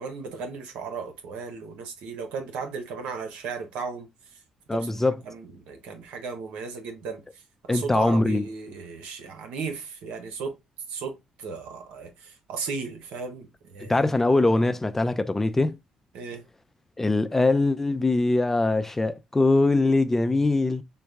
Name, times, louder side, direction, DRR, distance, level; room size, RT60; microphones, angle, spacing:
voice 1, 0.0-4.1 4.7-4.9 5.2-7.4 7.7-10.5 10.9-14.0 16.1-16.4, right 5 dB, 85° right, 1.0 m, -35 dB
voice 2, 4.7-5.2 7.7-8.4 13.8-15.8 17.0-20.8, left 2 dB, 15° left, 0.4 m, -22 dB
3.9 x 2.3 x 3.5 m
cardioid pair, 80°, 2 cm